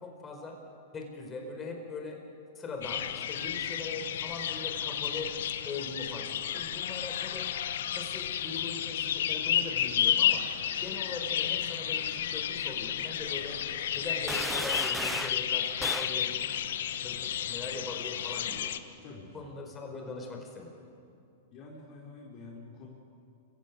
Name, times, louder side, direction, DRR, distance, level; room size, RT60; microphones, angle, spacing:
voice 1, 0.0-0.6 0.9-2.2 2.5-5.3 5.6-7.4 7.9-10.4 10.8-13.6 14.0-16.6 17.0-18.7 19.3-20.7, left 3 dB, 20° left, 2 dB, 4.7 m, -41 dB
sound 1, 2.8-18.8, left 10 dB, 75° left, 1.0 m, -32 dB
sound 2, 14.3-15.4 15.8-16.2, right 2 dB, 5° right, 0.5 m, -35 dB
voice 2, 19.0-19.5 21.5-22.9, left 3 dB, 40° left, -1 dB, 3.7 m, -47 dB
25.5 x 15.5 x 9.5 m, 2.5 s
hypercardioid pair, 120°, 0 cm